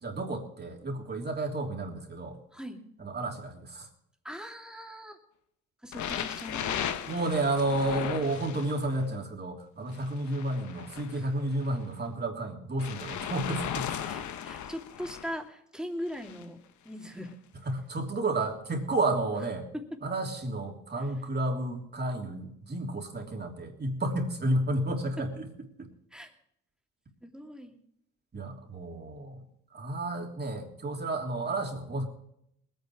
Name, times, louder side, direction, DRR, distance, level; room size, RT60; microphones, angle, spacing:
voice 1, 0.0-2.4 3.0-3.9 7.1-14.2 17.6-19.7 20.0-25.5 25.8-25.9 28.3-29.4 29.7-32.0, right 2 dB, 35° right, 2 dB, 3.2 m, -31 dB
voice 2, 4.2-5.2 5.8-7.0 11.1-11.3 14.0-17.4 19.7-19.8 25.2-25.3 26.1-26.3 27.2-27.7, equal, ahead, 3 dB, 2.6 m, -40 dB
sound 1, 5.9-9.0 9.9-11.8 12.8-15.4 16.1-16.5 17.3-17.4, left 9 dB, 70° left, 1.1 m, -37 dB
20.0 x 9.2 x 4.8 m, 0.74 s
cardioid pair, 90°, 30 cm